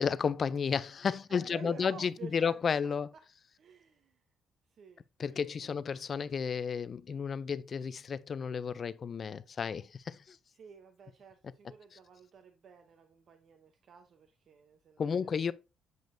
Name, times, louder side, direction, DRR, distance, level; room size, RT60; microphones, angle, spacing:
voice 1, 0.0-3.1 5.2-10.4 15.0-15.5, left 6 dB, 35° left, 0.3 m, -32 dB
voice 2, 1.3-2.6 3.6-4.2 4.7-5.0 5.3-5.8 10.5-15.5, right 6 dB, 50° right, 0.7 m, -52 dB
7.7 x 5.2 x 2.5 m
cardioid pair, 145°, 0 cm